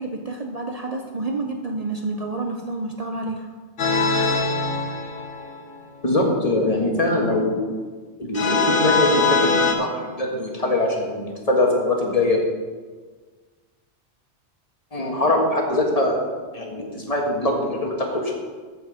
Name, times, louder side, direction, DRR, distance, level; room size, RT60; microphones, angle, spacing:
voice 1, 0.0-3.5, right 2 dB, 40° right, 2 dB, 0.6 m, -29 dB
sound 1, 3.8-5.8 8.3-9.7, left 3 dB, 90° left, 1.4 m, -22 dB
voice 2, 6.0-7.6 8.2-12.4 14.9-16.2 16.5-18.3, left 2 dB, 35° left, 0 dB, 1.6 m, -22 dB
14.0 x 5.2 x 5.1 m, 1.5 s
omnidirectional pair, 1.2 m